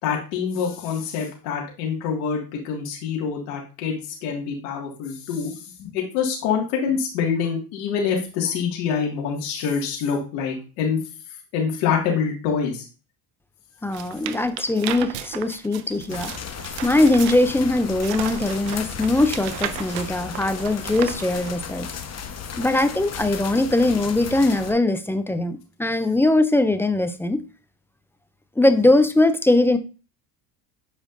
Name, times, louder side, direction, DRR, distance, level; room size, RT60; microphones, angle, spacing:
voice 1, 0.0-11.0 11.5-12.8, left 6 dB, 75° left, -1 dB, 2.0 m, -26 dB
voice 2, 13.8-16.3 16.8-21.9 22.6-27.4 28.6-29.8, left 2 dB, 5° left, 10 dB, 0.3 m, -21 dB
sound 1, 13.9-21.6, right 12 dB, 90° right, 0.7 m, -35 dB
sound 2, 16.1-24.7, left 7 dB, 30° left, 1.1 m, -35 dB
7.4 x 5.2 x 2.5 m, 0.34 s
supercardioid pair, 90°, 48 cm